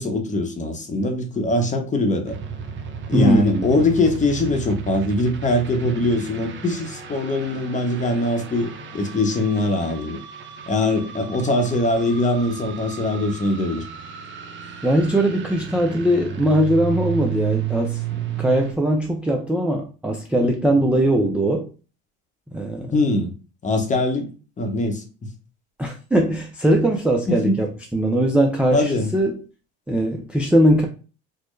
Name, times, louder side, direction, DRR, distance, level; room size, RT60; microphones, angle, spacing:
voice 1, 0.0-2.4 3.1-10.2 10.7-13.8 18.1-18.2 22.9-23.3 23.6-25.0 27.3-27.6 28.7-29.1, left 2 dB, 25° left, 0.8 m, -22 dB
sound 1, 2.3-18.7, right 9 dB, 35° right, 0.7 m, -33 dB
voice 2, 3.1-3.7 14.8-18.0 18.4-21.7 22.5-22.9 25.8-29.4 29.9-30.9, right 1 dB, 5° right, 0.4 m, -20 dB
4.3 x 2.1 x 3.1 m
supercardioid pair, 110°, 32 cm